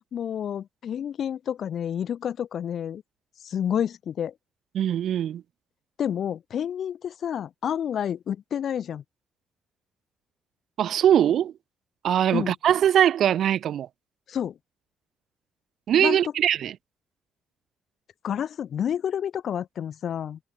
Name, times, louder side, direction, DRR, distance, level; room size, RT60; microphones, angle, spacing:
voice 1, 0.1-3.0 3.4-4.3 6.0-9.0 12.3-12.5 14.3-14.5 16.0-16.2 18.2-20.4, left 9 dB, 60° left, 2.7 m, -29 dB
voice 2, 4.7-5.4 10.8-11.5 12.0-13.9 15.9-16.8, right 10 dB, 70° right, 2.0 m, -21 dB
cardioid pair, 90°, 0 cm